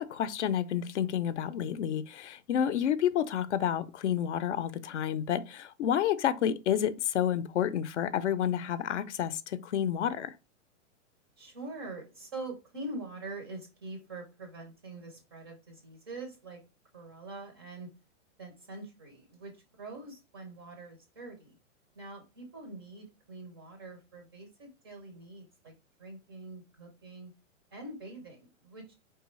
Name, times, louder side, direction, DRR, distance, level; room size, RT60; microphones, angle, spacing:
voice 1, 0.0-10.3, left 9 dB, 60° left, 0.5 m, -30 dB
voice 2, 11.4-16.6 16.9-17.9 18.4-21.6 22.0-27.3 27.7-28.9, right 2 dB, 20° right, 0.4 m, -44 dB
4.6 x 3.3 x 3.0 m
hypercardioid pair, 165°, 40 cm